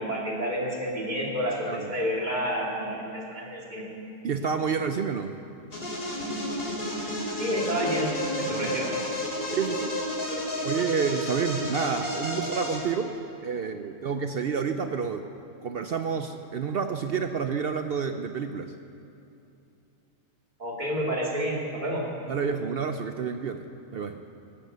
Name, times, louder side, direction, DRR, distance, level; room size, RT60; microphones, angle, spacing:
voice 1, 0.0-3.9 7.4-8.9 20.6-22.0, equal, 35° right, -3 dB, 2.7 m, -29 dB
voice 2, 4.2-5.4 8.5-8.8 9.5-9.9 10.6-13.1 13.4-15.3 15.6-18.7 22.3-23.7 23.9-24.2, right 6 dB, 55° right, 7 dB, 0.7 m, -29 dB
sound 1, 5.7-12.8, left 1 dB, 45° left, 3.1 m, -31 dB
16.0 x 11.5 x 6.8 m, 2.7 s
omnidirectional pair, 1.4 m